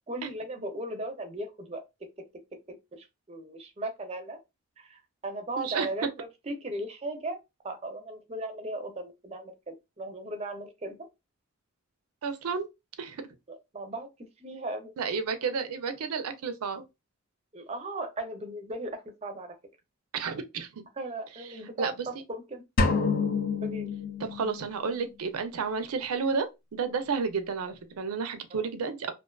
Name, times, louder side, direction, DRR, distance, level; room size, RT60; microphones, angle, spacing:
voice 1, 0.0-1.9 2.7-4.4 4.8-7.4 7.6-11.1 13.5-14.9 17.5-19.6 21.0-22.6 23.6-23.9 28.5-28.7, right 1 dB, 30° right, 0.4 m, -37 dB
voice 2, 5.6-5.9 12.2-12.7 13.0-13.2 15.0-16.9 20.1-20.8 21.8-21.9 24.2-29.1, right 5 dB, 85° right, 0.4 m, -31 dB
sound 1, 22.8-24.8, left 4 dB, 40° left, 0.4 m, -28 dB
2.5 x 2.2 x 2.2 m
head